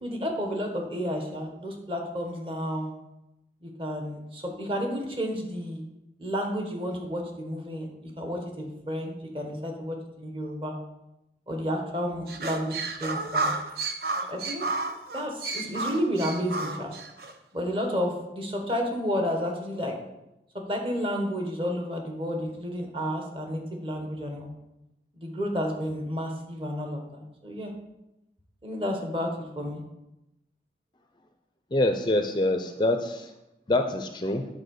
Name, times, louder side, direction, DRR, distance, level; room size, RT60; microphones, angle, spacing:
voice 1, 0.0-2.9 3.6-5.9 6.2-10.8 11.5-13.5 14.3-14.7 15.1-16.9 17.5-20.0 20.7-24.5 25.2-27.7 28.6-29.3 29.6-29.8, equal, 30° right, 2 dB, 1.4 m, -31 dB
sound 1, 12.3-17.3, right 3 dB, 60° right, 0.8 m, -31 dB
voice 2, 31.7-33.3 33.7-34.5, left 1 dB, 25° left, 6 dB, 0.5 m, -25 dB
8.8 x 4.6 x 6.5 m, 0.91 s
head